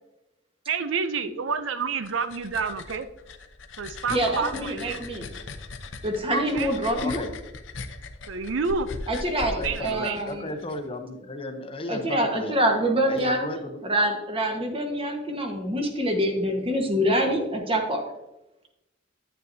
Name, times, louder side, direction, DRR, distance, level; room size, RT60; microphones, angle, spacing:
voice 1, 0.7-3.1 3.8-5.0 6.3-6.7 8.3-8.9 9.6-10.2, right 5 dB, 80° right, 11 dB, 0.5 m, -29 dB
sound 1, 1.8-10.8, left 3 dB, 70° left, 0.7 m, -39 dB
voice 2, 4.1-5.3 6.0-7.2 9.1-10.5 11.9-13.5 13.8-18.0, equal, 30° right, 2 dB, 1.4 m, -25 dB
voice 3, 7.0-7.3 9.4-12.6 13.1-13.8, left 2 dB, 30° left, 6 dB, 0.7 m, -35 dB
9.3 x 9.0 x 2.7 m, 0.94 s
head